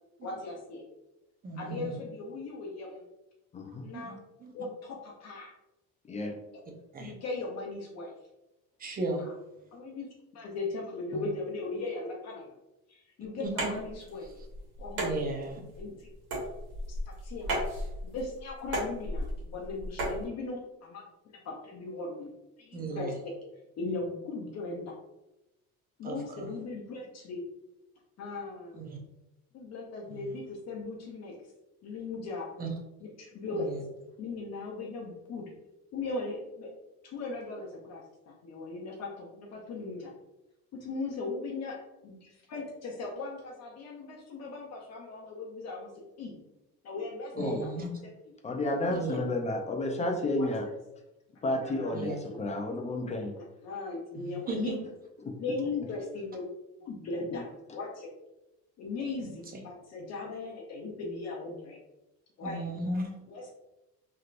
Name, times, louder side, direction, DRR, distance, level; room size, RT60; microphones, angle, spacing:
voice 1, 0.2-0.8 1.6-3.1 3.8-4.1 4.5-5.5 6.5-6.6 7.0-8.1 9.2-9.3 9.7-10.1 10.3-12.5 12.9-14.3 14.8-15.1 15.8-16.1 17.1-17.5 18.0-22.3 22.6-23.3 23.8-24.9 26.0-27.4 28.2-28.8 29.5-31.3 31.8-32.5 33.0-33.7 34.2-35.5 35.9-36.7 37.0-40.1 40.8-41.8 42.0-45.9 46.2-46.4 46.8-47.7 50.4-50.5 51.6-52.0 52.3-52.4 53.0-53.2 53.6-54.7 55.4-56.5 56.8-58.1 58.8-61.8 62.4-62.6 63.3-63.5, left 3 dB, 50° left, -1 dB, 0.7 m, -38 dB
voice 2, 1.4-2.0 3.9-4.1 4.4-4.5 6.9-7.1 8.8-9.2 13.4-13.7 15.0-15.6 22.7-23.1 26.0-26.5 28.7-29.0 30.1-30.3 32.6-32.7 33.5-33.8 47.4-47.9 48.7-49.2 51.9-52.2 54.1-54.7 59.2-59.3 62.4-63.1, right 2 dB, 25° right, 1 dB, 0.6 m, -36 dB
voice 3, 3.5-3.8 6.0-6.3 11.1-11.3 47.4-47.6 48.4-50.7 51.4-53.3 55.2-55.3 57.3-57.4, left 2 dB, 20° left, 3 dB, 0.3 m, -31 dB
sound 1, 13.4-20.2, right 1 dB, 80° right, 1.4 m, -35 dB
3.2 x 2.8 x 2.4 m, 0.94 s
cardioid pair, 130°, 34 cm